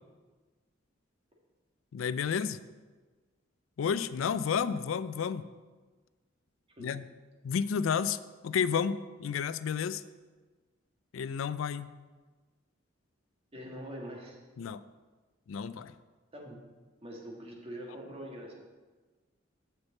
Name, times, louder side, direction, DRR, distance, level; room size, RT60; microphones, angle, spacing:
voice 1, 1.9-2.6 3.8-5.4 6.8-7.1 7.4-8.2 8.4-10.0 11.1-11.9 14.6-14.8 15.5-15.9, left 7 dB, 90° left, 15 dB, 0.4 m, -31 dB
voice 2, 13.5-14.4 16.3-16.6 17.0-18.5, equal, 30° right, -1 dB, 1.6 m, -43 dB
6.4 x 5.9 x 7.2 m, 1.3 s
head